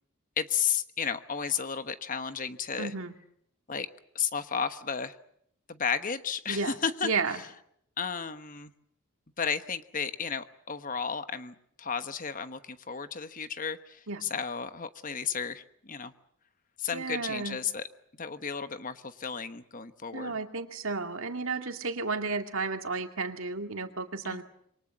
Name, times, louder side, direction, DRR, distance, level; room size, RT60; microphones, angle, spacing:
voice 1, 0.4-2.9 3.7-3.9 4.1-5.2 5.7-7.1 8.0-8.7 9.4-16.1 16.8-17.9 18.2-20.3 24.2-24.4, left 6 dB, 35° left, 11 dB, 1.1 m, -33 dB
voice 2, 2.8-3.1 6.5-6.8 7.0-7.4 14.1-14.2 16.9-17.6 20.1-24.4, right 4 dB, 65° right, 6 dB, 2.3 m, -32 dB
27.0 x 23.5 x 7.3 m, 0.71 s
head